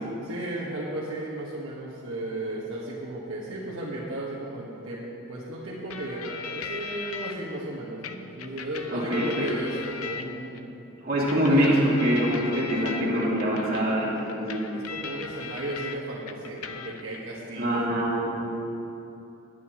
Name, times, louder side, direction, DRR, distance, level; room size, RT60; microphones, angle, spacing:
voice 1, 0.2-10.7 11.1-11.8 12.3-13.1 13.8-17.9, right 1 dB, 60° right, -8 dB, 1.6 m, -35 dB
sound 1, 5.9-7.3 8.0-10.6 11.3-16.0 16.3-17.2, left 5 dB, 85° left, 0.7 m, -38 dB
voice 2, 8.9-9.5 11.0-14.7 17.6-18.5, equal, 45° right, -6 dB, 2.6 m, -24 dB
20.0 x 9.4 x 3.1 m, 2.8 s
head